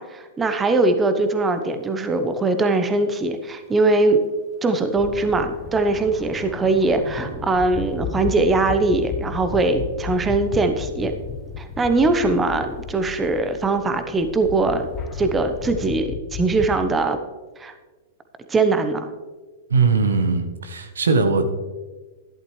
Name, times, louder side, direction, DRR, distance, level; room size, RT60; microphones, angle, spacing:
voice 1, 0.0-4.2 4.6-11.1 11.6-14.9 15.1-17.2 17.6-17.7 18.5-19.1, right 3 dB, 15° right, 8 dB, 1.0 m, -21 dB
Thunder / Rain, 1.2-1.3 4.3-16.0, left 1 dB, 5° left, 1.8 m, -43 dB
sound 1, 5.0-16.9, left 6 dB, 30° left, 0.9 m, -34 dB
voice 2, 19.7-21.4, right 4 dB, 85° right, 8 dB, 1.1 m, -20 dB
12.0 x 11.0 x 3.3 m, 1.3 s
hypercardioid pair, 115°, 0 cm